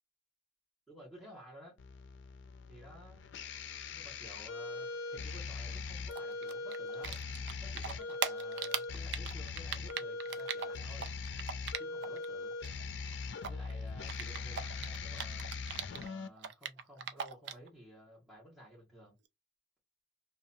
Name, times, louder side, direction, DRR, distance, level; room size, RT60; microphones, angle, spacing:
voice 1, 0.9-1.8 2.7-3.2 3.9-7.2 7.6-11.1 11.7-12.6 13.5-15.7 16.0-19.2, equal, ahead, 1.3 m, -54 dB
sound 1, 1.8-16.3, left 4 dB, 75° left, 0.4 m, -41 dB
Typing, 6.1-7.5 7.8-12.2 12.5-16.1 16.4-17.7, right 7 dB, 70° right, 0.4 m, -39 dB
2.7 x 2.2 x 2.6 m
head